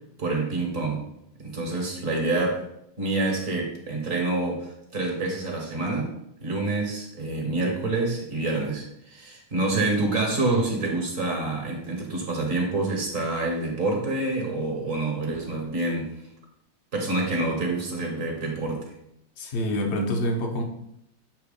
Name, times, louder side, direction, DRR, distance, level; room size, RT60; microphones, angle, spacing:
voice 1, 0.2-1.0 1.4-2.7 3.0-6.1 6.4-16.1 16.9-18.9, right 2 dB, 45° right, 0 dB, 1.5 m, -27 dB
voice 2, 19.4-20.6, equal, 45° left, 2 dB, 0.9 m, -26 dB
7.4 x 3.0 x 5.1 m, 0.77 s
omnidirectional pair, 2.1 m